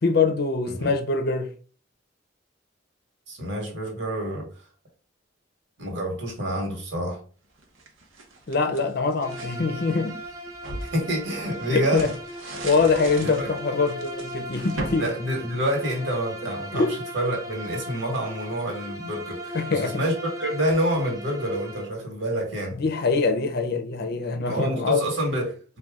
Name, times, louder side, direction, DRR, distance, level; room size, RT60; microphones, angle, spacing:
voice 1, 0.0-1.5 8.5-10.2 11.7-12.1 12.6-15.1 16.7-16.9 19.5-20.0 22.7-25.0, left 4 dB, 50° left, 0.6 m, -24 dB
voice 2, 3.3-4.5 5.8-7.2 10.8-12.1 13.2-13.5 15.0-22.8 24.5-25.8, right 1 dB, 65° right, 1.3 m, -28 dB
sound 1, 7.6-9.6 10.1-16.1, right 2 dB, 90° right, 0.8 m, -39 dB
Bowed string instrument, 9.2-22.0, right 1 dB, 15° right, 0.5 m, -38 dB
4.1 x 2.3 x 3.5 m
head